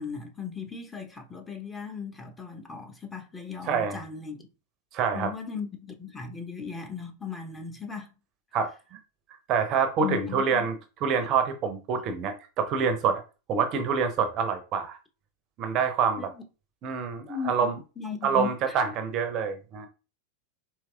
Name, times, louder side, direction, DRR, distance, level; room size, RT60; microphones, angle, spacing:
voice 1, 0.0-4.5 5.1-8.1 10.0-10.6 16.2-16.4 17.3-18.7, left 6 dB, 15° left, 1.1 m, -37 dB
voice 2, 3.7-4.0 4.9-5.3 8.5-8.7 9.5-10.7 11.0-13.2 13.5-15.0 15.6-16.3 16.8-17.8 18.2-19.9, right 6 dB, 35° right, 0.8 m, -26 dB
4.7 x 3.0 x 3.4 m
figure-of-eight pair, 90°, 0 cm